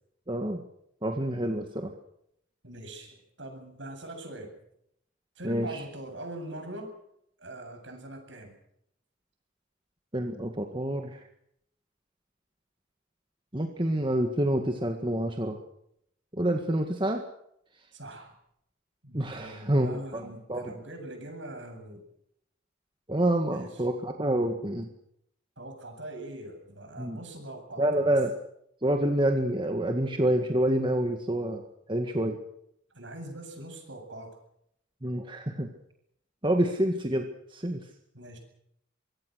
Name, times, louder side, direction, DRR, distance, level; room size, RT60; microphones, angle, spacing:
voice 1, 0.3-0.6 1.0-1.9 5.4-5.8 10.1-11.2 13.5-15.6 16.3-17.2 19.1-20.7 23.1-24.9 27.0-27.2 27.8-28.3 28.8-31.6 31.9-32.4 35.0-35.7 36.4-37.8, right 1 dB, 25° right, 4 dB, 1.8 m, -27 dB
voice 2, 2.6-4.6 5.4-7.0 7.4-8.6 17.9-18.3 19.0-22.0 23.5-23.8 25.6-28.2 32.9-34.4 38.1-38.4, right 1 dB, 65° right, 5 dB, 7.9 m, -42 dB
24.5 x 23.0 x 6.5 m, 0.74 s
head